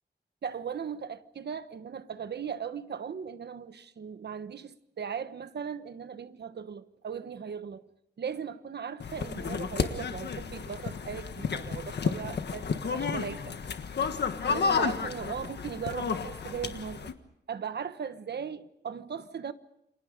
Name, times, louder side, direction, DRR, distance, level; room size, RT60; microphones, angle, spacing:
voice 1, 0.4-7.8 8.2-13.6 14.0-14.1 14.5-17.1 17.5-19.5, right 7 dB, 70° right, 1.2 m, -38 dB
sound 1, 9.0-17.1, left 5 dB, 75° left, 1.5 m, -32 dB
29.0 x 25.5 x 5.2 m
wide cardioid pair, 160°, 18 cm